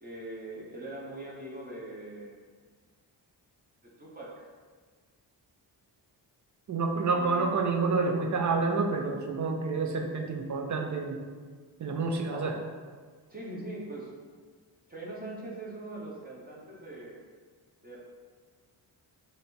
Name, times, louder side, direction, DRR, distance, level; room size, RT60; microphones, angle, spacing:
voice 1, 0.0-2.4 3.8-4.5 7.1-7.5 12.3-12.6 13.3-14.1 14.9-17.2 17.8-18.0, right 1 dB, 20° right, -5 dB, 0.9 m, -41 dB
voice 2, 6.7-11.3 11.8-12.5, right 4 dB, 45° right, 3 dB, 0.6 m, -28 dB
3.2 x 2.7 x 4.3 m, 1.5 s
cardioid pair, 75°, 44 cm